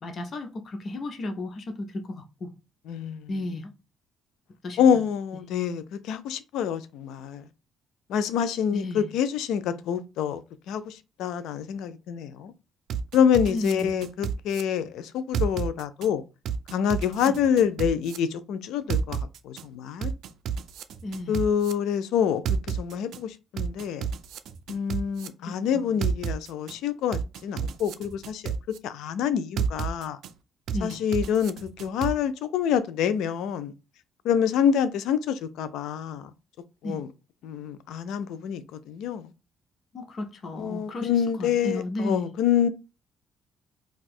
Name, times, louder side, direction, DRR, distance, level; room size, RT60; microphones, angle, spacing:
voice 1, 0.0-2.5 3.3-3.7 4.6-4.8 8.7-9.1 13.5-14.0 17.3-17.4 21.0-21.4 25.5-25.9 30.7-31.0 36.8-37.0 39.9-41.1 41.4-42.4, left 2 dB, 45° left, 0.6 m, -34 dB
voice 2, 2.9-3.3 4.8-7.4 8.1-10.4 10.7-12.5 13.1-16.2 16.7-19.2 19.4-20.1 21.3-22.4 22.7-24.1 24.7-28.5 28.8-30.2 30.8-33.7 34.2-36.3 36.8-37.1 37.4-39.3 40.5-42.7, left 8 dB, 85° left, 0.4 m, -26 dB
sound 1, 12.9-14.6 15.3-16.1 16.5-18.2 18.9-19.6 20.0-21.7 22.5-23.2 23.6-25.3 26.0-26.7 27.1-28.8 29.6-30.3 30.7-32.1, right 8 dB, 75° right, 0.4 m, -30 dB
2.7 x 2.3 x 4.1 m
cardioid pair, 105°, 0 cm